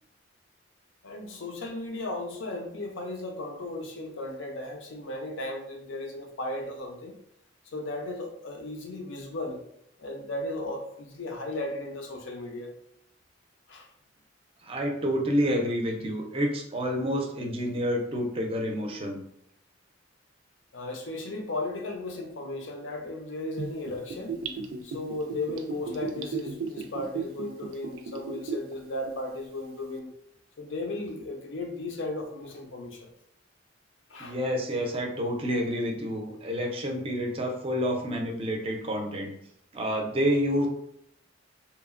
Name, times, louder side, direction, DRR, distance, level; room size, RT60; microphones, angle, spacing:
voice 1, 1.0-7.1 7.7-9.6 10.0-12.7 13.7-13.9 20.7-24.4 24.8-30.1 30.6-33.1 34.1-34.3, left 2 dB, 70° left, 3 dB, 0.5 m, -35 dB
voice 2, 14.6-19.2 34.2-39.3 39.7-40.7, equal, 30° right, 1 dB, 0.5 m, -28 dB
Gurgling / Bathtub (filling or washing), 23.6-28.7 29.1-29.2, right 5 dB, 90° right, 0.3 m, -35 dB
2.8 x 2.0 x 2.4 m, 0.74 s
head